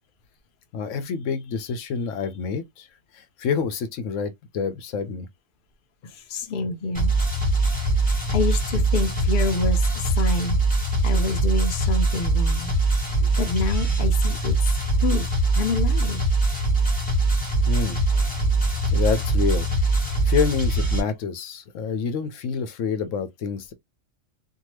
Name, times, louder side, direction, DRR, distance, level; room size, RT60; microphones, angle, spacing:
voice 1, 0.7-2.9 3.1-5.3 17.7-18.3 18.9-19.7 20.2-23.7, left 6 dB, 75° left, 0.9 m, -27 dB
voice 2, 6.0-7.1 8.3-12.7 13.4-14.6 15.0-15.3 15.5-16.2, left 4 dB, 50° left, 0.7 m, -28 dB
sound 1, 6.9-21.0, right 2 dB, 5° left, 1.2 m, -22 dB
2.8 x 2.2 x 3.1 m
omnidirectional pair, 1.4 m